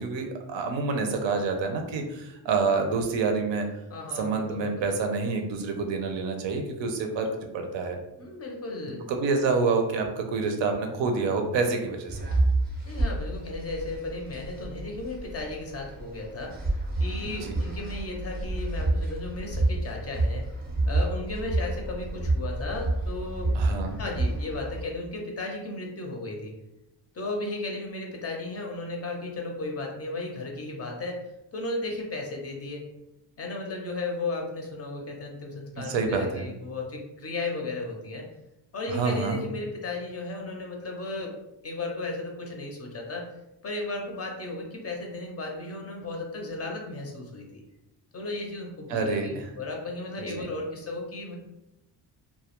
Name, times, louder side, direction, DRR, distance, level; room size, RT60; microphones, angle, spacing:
voice 1, 0.0-3.7 4.1-7.3 7.5-8.0 9.1-12.2 17.2-17.6 23.5-24.0 35.8-36.5 38.9-39.4 48.9-49.5 50.2-50.4, right 4 dB, 80° right, 4 dB, 0.6 m, -27 dB
voice 2, 3.9-4.9 8.2-9.0 12.8-20.5 20.9-23.5 23.9-26.6 27.1-31.2 31.5-32.8 33.4-38.3 38.7-41.3 41.6-43.3 43.6-47.5 48.1-51.4, left 2 dB, 35° left, 1 dB, 0.4 m, -35 dB
sound 1, 12.1-24.8, right 2 dB, 20° right, 0.4 m, -29 dB
2.2 x 2.0 x 2.9 m, 0.89 s
cardioid pair, 130°, 44 cm